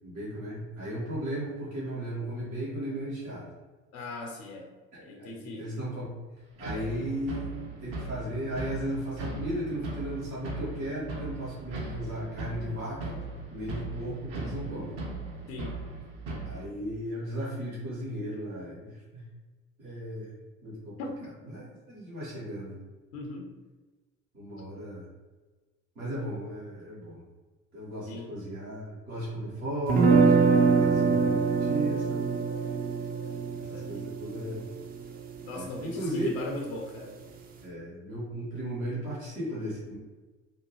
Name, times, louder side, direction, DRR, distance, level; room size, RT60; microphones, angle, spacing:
voice 1, 0.0-3.5 5.2-6.1 6.6-13.2 13.5-15.0 16.4-19.2 19.8-21.0 21.4-22.8 24.3-25.1 25.9-27.2 27.7-32.3 33.6-34.6 35.5-36.4 37.6-40.0, right 1 dB, 85° right, -8 dB, 1.2 m, -36 dB
voice 2, 3.9-5.7 15.5-15.8 21.0-21.2 23.1-23.5 28.0-28.4 33.7-34.1 35.4-37.2, left 2 dB, 75° left, 0 dB, 0.6 m, -39 dB
sound 1, 6.6-16.6, right 3 dB, 65° right, 0.7 m, -38 dB
sound 2, 29.9-35.9, right 4 dB, 25° right, 0.3 m, -24 dB
2.8 x 2.2 x 2.8 m, 1.3 s
figure-of-eight pair, 50°, 41 cm